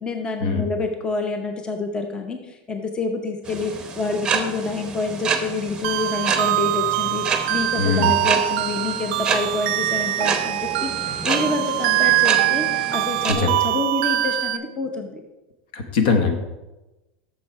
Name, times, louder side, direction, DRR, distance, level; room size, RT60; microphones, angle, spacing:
voice 1, 0.0-15.2, left 3 dB, 15° left, 5 dB, 0.7 m, -27 dB
sound 1, 3.4-13.3, right 5 dB, 15° right, 0.8 m, -29 dB
sound 2, 5.8-14.6, right 16 dB, 75° right, 0.4 m, -23 dB
voice 2, 7.8-8.1 13.3-13.5 15.7-16.4, left 4 dB, 70° left, 6 dB, 1.3 m, -21 dB
7.3 x 6.6 x 4.6 m, 1.0 s
supercardioid pair, 155°, 6 cm